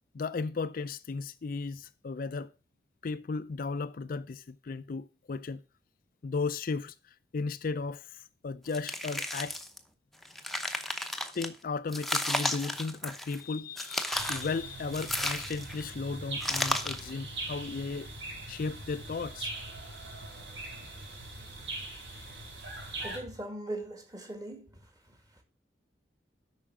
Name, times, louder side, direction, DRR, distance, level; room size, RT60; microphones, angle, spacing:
voice 1, 0.1-2.5 3.0-5.6 6.2-9.6 11.3-18.1 18.5-19.5, left 4 dB, 50° left, 0.4 m, -35 dB
sound 1, 8.7-9.8 10.2-11.5 11.9-13.4 13.8-14.5 14.9-15.8 16.4-17.1, left 1 dB, ahead, 0.8 m, -33 dB
sound 2, 14.1-23.2, right 2 dB, 85° right, 5.0 m, -41 dB
voice 2, 23.0-25.4, right 1 dB, 20° right, 1.9 m, -41 dB
8.7 x 5.7 x 6.0 m
head